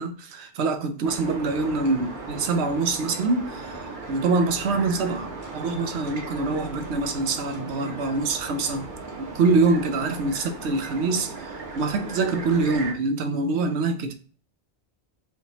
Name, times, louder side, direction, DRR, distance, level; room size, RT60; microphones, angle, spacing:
voice 1, 0.0-8.9 9.2-14.1, right 3 dB, 90° right, 1.0 m, -25 dB
sound 1, 1.0-12.9, right 3 dB, 50° right, 1.0 m, -37 dB
4.8 x 2.9 x 2.8 m
omnidirectional pair, 1.1 m